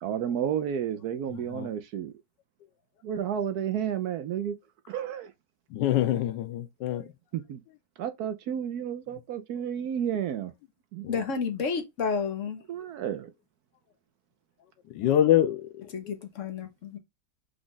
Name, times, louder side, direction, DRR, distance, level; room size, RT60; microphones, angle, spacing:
voice 1, 0.0-2.1 3.0-4.6 4.9-5.3 7.3-7.6 8.0-10.5 10.9-11.0 12.7-13.3, right 9 dB, 70° right, 1.1 m, -31 dB
voice 2, 1.3-1.7 5.7-7.1 11.0-11.2 14.9-16.1, left 12 dB, 90° left, 1.3 m, -26 dB
voice 3, 11.1-12.6 15.9-17.0, left 5 dB, 55° left, 1.1 m, -31 dB
5.2 x 2.4 x 3.7 m
omnidirectional pair, 1.9 m